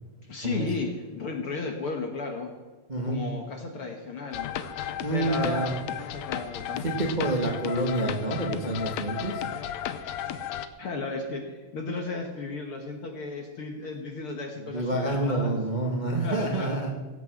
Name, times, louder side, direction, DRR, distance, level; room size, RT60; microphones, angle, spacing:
voice 1, 0.3-2.5 3.0-4.5 4.9-5.8 6.1-6.8 10.2-10.4 10.8-15.5 16.2-16.8, left 4 dB, 60° left, 3 dB, 1.5 m, -34 dB
voice 2, 2.9-3.2 5.0-5.8 6.7-9.4 14.7-16.9, right 2 dB, 75° right, 0 dB, 0.4 m, -28 dB
sound 1, 4.3-10.7, left 9 dB, 80° left, 1.5 m, -34 dB
16.5 x 8.3 x 7.8 m, 1.3 s
omnidirectional pair, 4.0 m